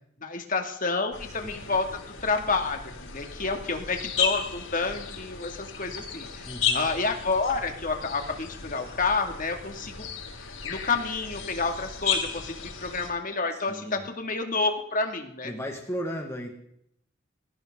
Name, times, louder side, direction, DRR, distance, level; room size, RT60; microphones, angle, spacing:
voice 1, 0.2-10.1 10.6-15.5, left 3 dB, 40° left, 4 dB, 2.5 m, -29 dB
sound 1, 1.1-13.1, left 7 dB, 85° left, 6.9 m, -34 dB
voice 2, 6.4-6.9 13.5-14.1 15.4-16.5, equal, 15° left, 1 dB, 1.9 m, -35 dB
21.5 x 16.5 x 3.9 m, 0.70 s
head